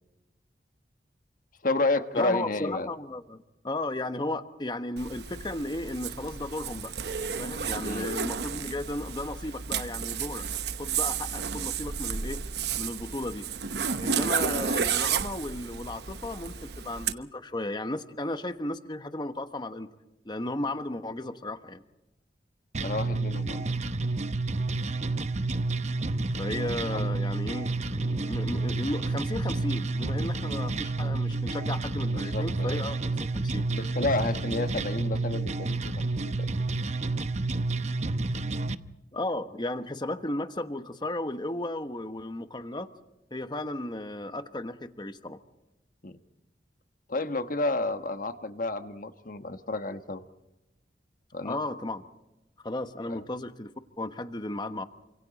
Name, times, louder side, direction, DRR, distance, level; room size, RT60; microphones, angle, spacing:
voice 1, 1.6-2.9 7.8-8.1 22.8-23.7 26.9-27.1 32.1-32.8 33.7-36.5 46.0-46.2 47.1-50.2 51.3-51.6 53.1-53.2, left 2 dB, 50° left, 9 dB, 1.4 m, -31 dB
voice 2, 2.1-6.9 7.4-10.5 10.8-12.4 12.8-13.5 14.0-19.9 20.2-21.8 26.0-33.6 39.1-42.9 43.3-45.4 51.4-52.1 52.6-54.8, left 1 dB, 25° left, 9 dB, 1.2 m, -34 dB
Zipper (clothing), 5.0-17.1, right 6 dB, 65° right, 1.0 m, -32 dB
sound 1, 22.7-38.7, right 2 dB, 40° right, 0.9 m, -30 dB
29.0 x 26.0 x 4.1 m, 0.98 s
head